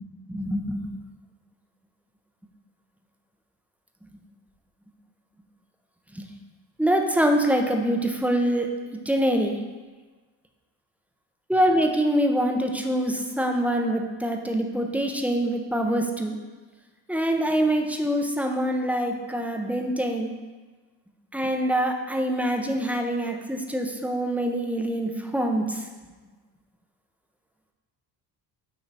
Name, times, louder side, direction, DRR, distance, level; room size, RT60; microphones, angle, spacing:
voice 1, 0.3-0.9 6.1-6.3 6.8-8.7 9.1-9.6 11.5-16.4 17.1-20.3 21.3-25.8, right 1 dB, 5° right, 3 dB, 0.7 m, -25 dB
8.8 x 3.0 x 4.0 m, 1.3 s
cardioid pair, 85°, 45 cm